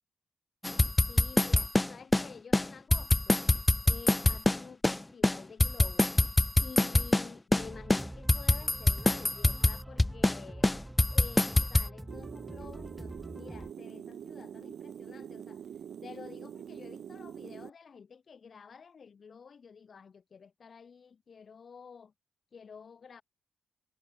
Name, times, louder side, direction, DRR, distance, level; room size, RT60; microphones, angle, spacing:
sound 1, 0.6-2.3 2.5-2.6 2.9-5.0 5.2-7.3 7.5-7.6 7.9-10.4 10.6-11.9, left 2 dB, 15° left, 0.3 m, -24 dB
voice 1, 1.1-3.5 3.8-6.1 6.6-10.7 11.1-22.1 22.5-23.2, left 6 dB, 45° left, 7.0 m, -50 dB
sound 2, 7.6-13.7, right 1 dB, 10° right, 0.8 m, -45 dB
sound 3, 12.1-17.7, right 9 dB, 70° right, 0.7 m, -44 dB
cardioid pair, 105°, 0 cm